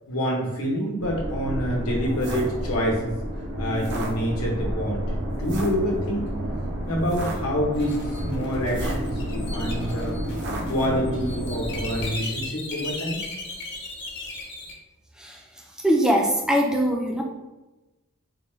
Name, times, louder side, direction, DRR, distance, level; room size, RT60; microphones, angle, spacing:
voice 1, 0.1-3.1 3.6-6.3 6.9-10.1 10.7-13.2, equal, 75° left, -2 dB, 0.9 m, -27 dB
sound 1, 1.0-12.1, equal, 50° right, 0.5 m, -30 dB
sound 2, 7.7-14.7, left 2 dB, 50° left, 0.7 m, -37 dB
voice 2, 15.8-17.2, equal, 5° right, 0 dB, 0.3 m, -21 dB
4.1 x 2.2 x 3.1 m, 1.1 s
head